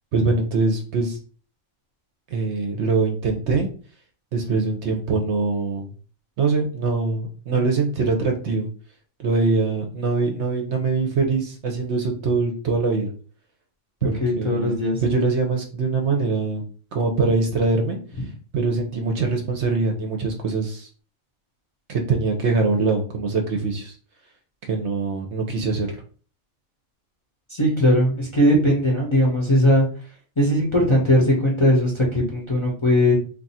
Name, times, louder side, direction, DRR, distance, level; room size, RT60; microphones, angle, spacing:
voice 1, 0.1-1.2 2.3-3.7 4.3-5.9 6.4-8.7 9.2-13.1 14.0-16.6 16.9-18.0 18.5-20.9 21.9-24.0 24.6-25.9, right 4 dB, 65° right, 3 dB, 0.8 m, -23 dB
voice 2, 14.2-15.2 27.5-29.9 30.4-33.1, equal, 30° left, -4 dB, 0.7 m, -19 dB
2.6 x 2.4 x 4.0 m, 0.40 s
omnidirectional pair, 1.4 m